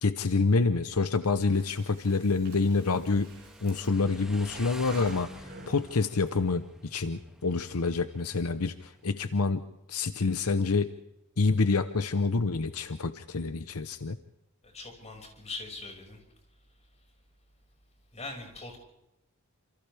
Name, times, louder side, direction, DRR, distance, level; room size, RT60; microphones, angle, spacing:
voice 1, 0.0-3.3 3.6-9.6 9.9-10.9 11.4-14.2, left 4 dB, 75° left, 11 dB, 0.9 m, -27 dB
Motorcycle, 1.0-9.3, equal, 5° right, 2.2 m, -50 dB
Breathing, 1.4-6.3, right 3 dB, 45° right, 7.2 m, -51 dB
voice 2, 14.6-16.2 18.1-18.8, left 3 dB, 30° left, 2 dB, 6.0 m, -41 dB
28.0 x 27.5 x 3.5 m, 0.87 s
head